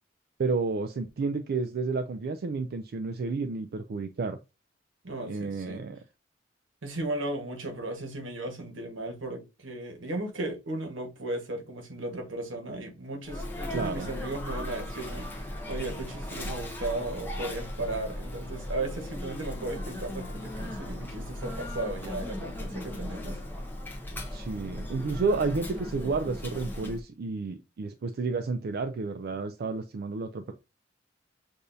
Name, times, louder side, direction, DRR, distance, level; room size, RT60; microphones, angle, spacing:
voice 1, 0.4-4.4 5.3-6.0 13.7-14.1 24.3-30.5, right 4 dB, 55° right, 0.4 m, -31 dB
voice 2, 5.0-5.8 6.8-23.4, right 2 dB, 85° right, 1.3 m, -36 dB
Sneeze, 13.2-27.0, left 1 dB, 10° left, 0.8 m, -37 dB
6.6 x 2.6 x 2.6 m
head